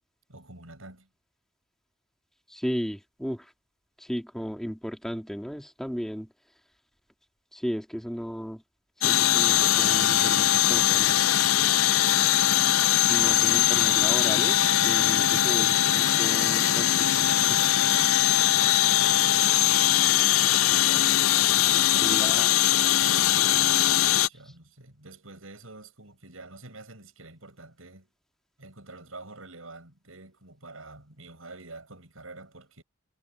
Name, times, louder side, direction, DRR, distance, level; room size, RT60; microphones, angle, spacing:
voice 1, 0.3-1.1 15.4-16.0 18.4-21.2 21.7-22.4 24.1-28.1 28.6-32.8, right 2 dB, 75° right, 7.2 m, -48 dB
voice 2, 2.5-3.5 4.0-6.3 7.5-8.6 9.0-11.3 13.1-17.6 22.0-22.5, equal, ahead, 2.1 m, -35 dB
sound 1, 9.0-24.3, left 12 dB, 85° left, 0.6 m, -21 dB
head